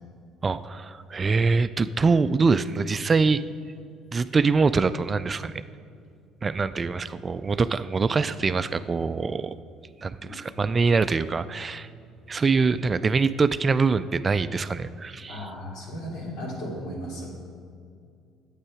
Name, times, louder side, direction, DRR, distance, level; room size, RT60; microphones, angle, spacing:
voice 1, 0.4-3.4 4.1-5.6 6.4-9.5 10.0-11.9 12.3-15.5, right 4 dB, 35° right, 14 dB, 0.3 m, -24 dB
voice 2, 15.3-17.3, equal, 70° left, -3 dB, 2.7 m, -35 dB
8.8 x 8.2 x 4.8 m, 2.3 s
hypercardioid pair, 60°, 0 cm